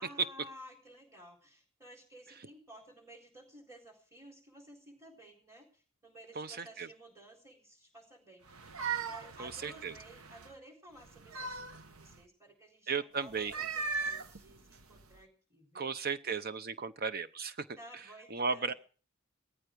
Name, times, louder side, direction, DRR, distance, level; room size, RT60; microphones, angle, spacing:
voice 1, 0.0-8.4 9.0-15.9 17.8-18.7, right 1 dB, 15° right, 1 dB, 4.1 m, -54 dB
voice 2, 6.4-6.9 9.4-9.9 12.9-13.5 15.7-17.7 18.3-18.7, right 5 dB, 45° right, 12 dB, 0.9 m, -35 dB
sound 1, 8.5-10.5 11.0-12.2 13.3-15.2, right 5 dB, 75° right, 1.1 m, -39 dB
17.5 x 14.0 x 5.2 m, 0.40 s
head